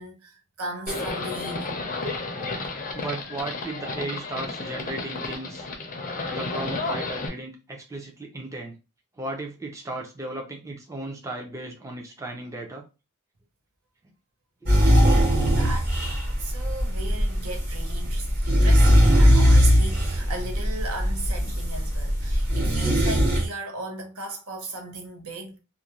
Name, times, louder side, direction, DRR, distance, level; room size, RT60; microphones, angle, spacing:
voice 1, 0.0-1.8 14.8-15.1 15.4-15.8 16.4-25.6, right 2 dB, 70° right, 0.8 m, -36 dB
Livestock farm animals working animals, 0.9-7.3, left 3 dB, 40° left, 0.5 m, -32 dB
voice 2, 2.9-5.7 6.3-8.7 9.2-12.8, right 2 dB, 15° right, 0.5 m, -35 dB
sound 1, 14.7-23.5, equal, 45° right, 1.2 m, -20 dB
2.5 x 2.2 x 2.9 m
head